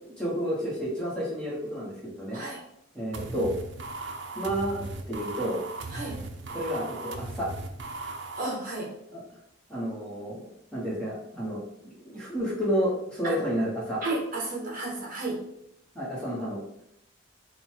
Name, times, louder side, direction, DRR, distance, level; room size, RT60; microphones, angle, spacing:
voice 1, 0.0-2.4 2.9-3.5 4.3-5.6 6.5-7.5 9.1-9.2 9.7-10.5 10.7-14.0 15.9-16.6, equal, 5° left, -6 dB, 1.1 m, -31 dB
sound 1, 3.1-8.5, right 2 dB, 60° right, 0.5 m, -38 dB
voice 2, 8.3-8.9 13.2-13.4 14.0-15.4, right 2 dB, 45° right, -2 dB, 1.0 m, -32 dB
3.8 x 2.2 x 4.5 m, 0.75 s
head